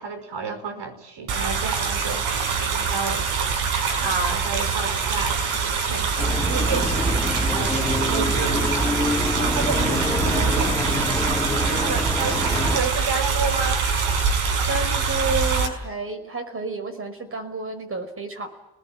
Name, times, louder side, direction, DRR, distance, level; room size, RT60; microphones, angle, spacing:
voice 1, 0.0-2.3 2.5-3.3 4.0-9.0 9.4-11.0 11.6-13.9, right 4 dB, 55° right, 8 dB, 5.2 m, -31 dB
sound 1, 1.3-15.7, right 5 dB, 80° right, 5.7 m, -24 dB
sound 2, 6.2-12.8, left 1 dB, 5° left, 2.5 m, -25 dB
voice 2, 7.7-8.4 14.7-18.5, right 2 dB, 25° right, 8 dB, 5.3 m, -30 dB
30.0 x 20.0 x 8.9 m, 0.86 s
cardioid pair, 130°, 48 cm